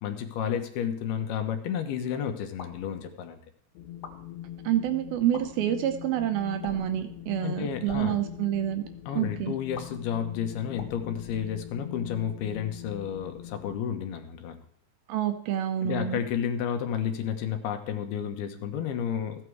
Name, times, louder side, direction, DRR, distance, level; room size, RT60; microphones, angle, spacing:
voice 1, 0.0-3.4 7.4-8.2 9.1-14.6 15.8-19.4, left 8 dB, 70° left, 6 dB, 3.0 m, -31 dB
sound 1, 2.6-2.9 3.9-4.2 5.2-5.4 6.6-7.0 7.7-8.1 9.7-9.9 10.7-11.9, left 6 dB, 45° left, 2.6 m, -44 dB
Wind, 3.8-13.8, left 11 dB, 90° left, 3.3 m, -42 dB
voice 2, 4.6-8.8 9.2-9.5 15.1-16.2, right 11 dB, 75° right, 7 dB, 2.5 m, -28 dB
15.0 x 9.0 x 4.7 m, 0.63 s
omnidirectional pair, 4.8 m